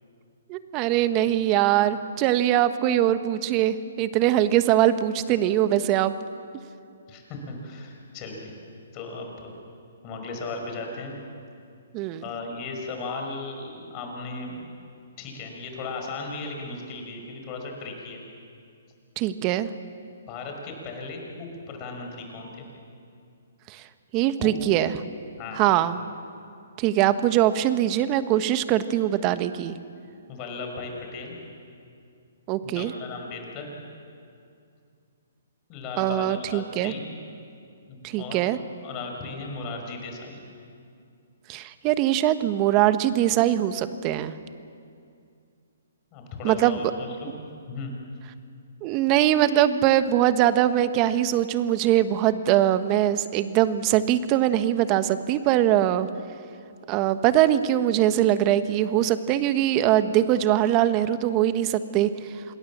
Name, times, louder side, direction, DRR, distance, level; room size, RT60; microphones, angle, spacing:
voice 1, 0.5-6.1 11.9-12.2 19.2-19.7 23.7-23.8 24.1-25.0 25.6-26.0 26.8-29.8 32.5-32.9 36.0-36.9 38.0-38.6 41.5-44.3 46.4-46.8 48.8-56.1 56.9-62.1, right 12 dB, 30° right, 12 dB, 1.2 m, -22 dB
voice 2, 7.1-8.6 8.9-9.5 10.0-11.2 12.2-14.7 15.2-18.2 20.3-22.6 24.4-24.5 25.4-25.7 30.3-31.3 32.6-33.7 35.7-37.0 37.9-38.4 38.8-40.4 46.1-47.3 47.7-47.9, left 3 dB, 30° left, 2 dB, 5.6 m, -36 dB
27.5 x 20.5 x 7.4 m, 2.4 s
hypercardioid pair, 135°, 0 cm